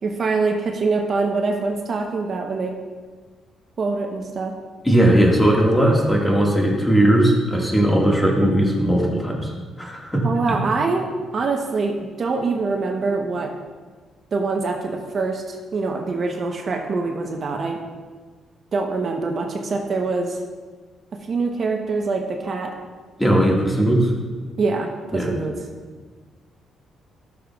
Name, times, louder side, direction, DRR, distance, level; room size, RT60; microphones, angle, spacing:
voice 1, 0.0-2.7 3.8-4.5 10.2-11.1 11.3-13.5 14.3-17.8 18.7-20.4 21.3-22.7 24.6-25.5, right 3 dB, 50° right, 2 dB, 0.8 m, -24 dB
voice 2, 4.8-10.6 23.2-24.1 25.1-25.3, right 1 dB, 10° left, -2 dB, 1.7 m, -18 dB
14.0 x 6.6 x 2.3 m, 1.4 s
cardioid pair, 90°, 0 cm